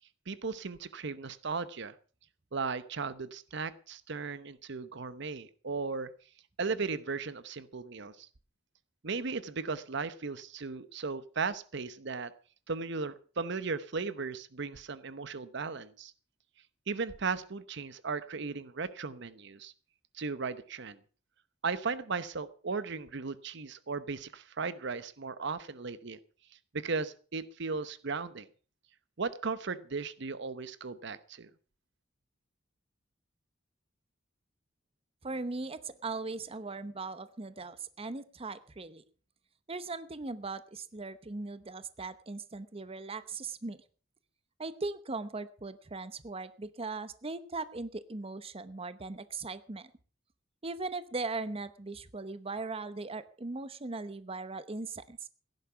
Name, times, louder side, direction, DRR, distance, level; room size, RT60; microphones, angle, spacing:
voice 1, 0.3-1.9 2.5-6.1 6.6-8.3 9.0-12.3 12.7-16.1 16.9-19.7 20.1-21.0 21.6-26.2 26.7-28.5 29.2-31.5, right 4 dB, 65° right, 15 dB, 0.9 m, -36 dB
voice 2, 35.2-39.0 39.7-43.8 44.6-49.9 50.6-55.3, right 3 dB, 30° right, 13 dB, 0.8 m, -39 dB
16.5 x 11.0 x 5.7 m, 0.41 s
head